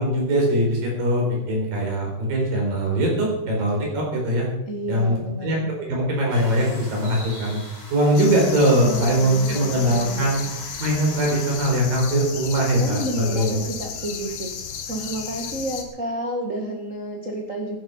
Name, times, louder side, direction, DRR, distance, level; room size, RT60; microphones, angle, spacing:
voice 1, 0.0-4.5 4.9-7.6 7.9-10.4 10.8-13.6, right 1 dB, 60° right, -1 dB, 5.8 m, -21 dB
voice 2, 4.7-5.7 8.8-10.5 12.8-17.8, right 1 dB, 80° right, -1 dB, 0.7 m, -31 dB
sound 1, 6.3-11.6, left 1 dB, 20° left, 4.7 m, -42 dB
sound 2, 8.2-15.8, left 7 dB, 65° left, 2.8 m, -34 dB
15.0 x 11.0 x 5.5 m, 0.87 s
omnidirectional pair, 4.6 m